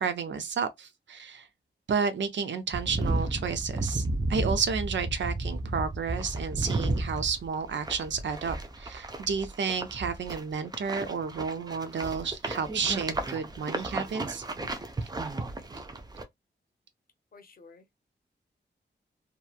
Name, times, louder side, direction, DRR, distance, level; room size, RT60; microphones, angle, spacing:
voice 1, 0.0-1.5 1.9-14.4, right 6 dB, 80° right, 0.6 m, -31 dB
sound 1, 2.7-16.2, right 2 dB, 20° right, 0.4 m, -33 dB
voice 2, 17.3-17.9, left 4 dB, 50° left, 0.7 m, -53 dB
2.9 x 2.2 x 2.3 m
wide cardioid pair, 160°, 19 cm